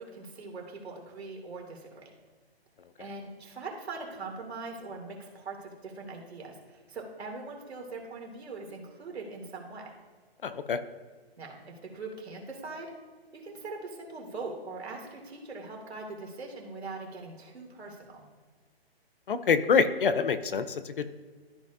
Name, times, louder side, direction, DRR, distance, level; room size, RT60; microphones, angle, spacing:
voice 1, 0.0-2.1 3.0-9.9 11.4-12.9 13.3-18.3, right 3 dB, 80° right, 1 dB, 2.4 m, -41 dB
voice 2, 10.4-10.8 19.3-21.0, left 6 dB, 55° left, 12 dB, 0.6 m, -26 dB
13.5 x 4.9 x 2.5 m, 1.4 s
hypercardioid pair, 170°, 32 cm